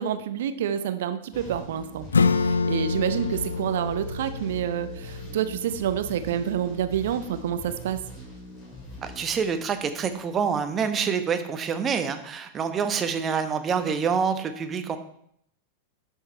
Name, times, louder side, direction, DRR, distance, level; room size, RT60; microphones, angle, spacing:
voice 1, 0.0-8.0, right 9 dB, 55° right, 11 dB, 0.8 m, -28 dB
sound 1, 1.3-10.2, equal, 30° left, 4.4 m, -43 dB
Acoustic guitar / Strum, 2.1-7.3, left 4 dB, 75° left, 0.4 m, -28 dB
voice 2, 9.0-15.0, right 6 dB, 25° right, 8 dB, 1.1 m, -26 dB
11.5 x 6.8 x 4.3 m, 0.69 s
figure-of-eight pair, 90°, 0 cm